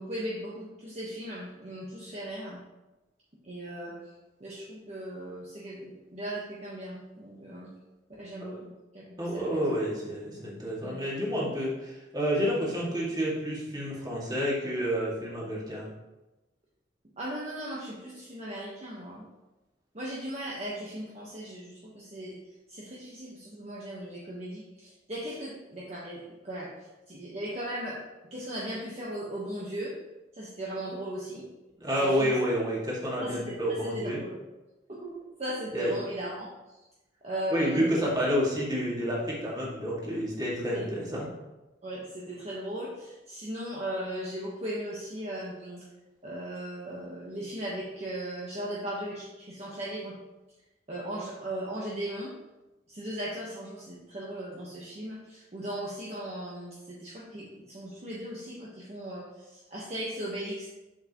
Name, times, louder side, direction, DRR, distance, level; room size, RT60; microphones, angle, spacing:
voice 1, 0.0-2.6 3.4-3.9 4.4-7.7 8.2-9.7 10.8-10.9 17.2-19.2 19.9-22.4 22.7-26.7 27.1-28.0 28.3-29.9 30.3-31.5 32.0-32.3 33.2-33.6 33.9-34.3 34.9-35.1 35.4-36.5 37.2-38.1 40.7-40.9 41.8-45.8 46.2-50.1 50.9-52.3 52.9-60.7, right 1 dB, 40° right, -6 dB, 1.2 m, -37 dB
voice 2, 9.2-15.9 31.8-34.2 35.7-36.0 37.5-41.3, equal, 25° right, -5 dB, 2.2 m, -29 dB
7.3 x 7.3 x 3.0 m, 1.0 s
head